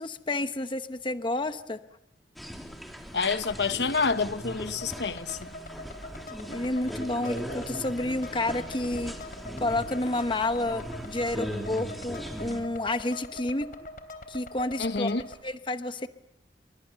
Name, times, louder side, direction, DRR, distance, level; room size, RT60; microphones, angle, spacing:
voice 1, 0.0-1.8 6.5-9.2 9.6-13.7 14.3-16.1, left 2 dB, 30° left, 0.9 m, -30 dB
sound 1, 2.4-12.6, equal, ahead, 3.2 m, -39 dB
voice 2, 3.1-5.4 14.8-15.2, left 4 dB, 70° left, 1.0 m, -28 dB
sound 2, 4.7-15.3, left 1 dB, 55° left, 3.2 m, -43 dB
29.0 x 24.5 x 6.9 m
head